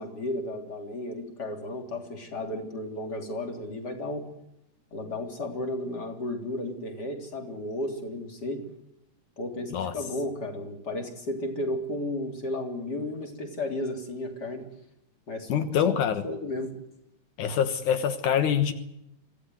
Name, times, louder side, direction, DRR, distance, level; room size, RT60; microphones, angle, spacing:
voice 1, 0.0-4.3 4.9-8.7 9.4-14.6 15.3-16.0 16.2-16.7, left 1 dB, 30° left, 4 dB, 4.0 m, -33 dB
voice 2, 15.5-16.2 17.4-18.7, left 8 dB, 80° left, 9 dB, 2.8 m, -25 dB
25.5 x 16.5 x 9.5 m, 0.83 s
omnidirectional pair, 3.5 m